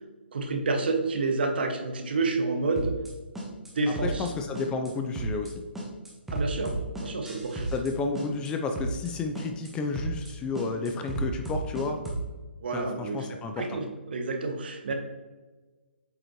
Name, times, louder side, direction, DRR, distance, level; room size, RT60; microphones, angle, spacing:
voice 1, 0.3-2.9 3.8-4.3 6.3-7.7 12.6-13.3 13.6-14.9, right 3 dB, 60° right, 5 dB, 1.2 m, -29 dB
sound 1, 2.8-3.1 3.4-3.7 4.0-4.3 4.6-4.9 5.2-5.5 5.8-7.9 8.2-8.5 8.8-9.1 9.4-9.7 10.0-10.3 10.6-12.3, right 2 dB, 5° right, 1.2 m, -33 dB
voice 2, 4.0-5.5 7.7-12.0 12.7-13.8, left 4 dB, 15° left, 5 dB, 0.5 m, -31 dB
7.9 x 5.1 x 3.1 m, 1.3 s
figure-of-eight pair, 140°, 6 cm